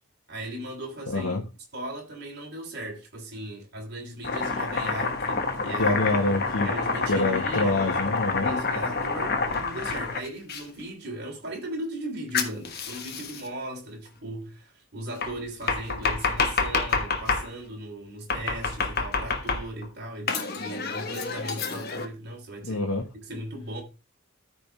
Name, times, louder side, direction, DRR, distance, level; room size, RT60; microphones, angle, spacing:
voice 1, 0.3-1.3 1.7-6.0 6.6-7.8 8.4-22.8 23.1-23.8, right 1 dB, 50° right, 3.1 m, -37 dB
voice 2, 1.1-1.4 5.8-6.7 7.1-8.5 22.6-23.1, left 2 dB, 90° left, 1.5 m, -26 dB
Domestic sounds home sounds, 4.2-10.6 12.3-13.5 15.2-17.5 18.3-19.9 20.3-22.1, left 4 dB, 45° left, 1.3 m, -28 dB
14.0 x 5.0 x 3.4 m
head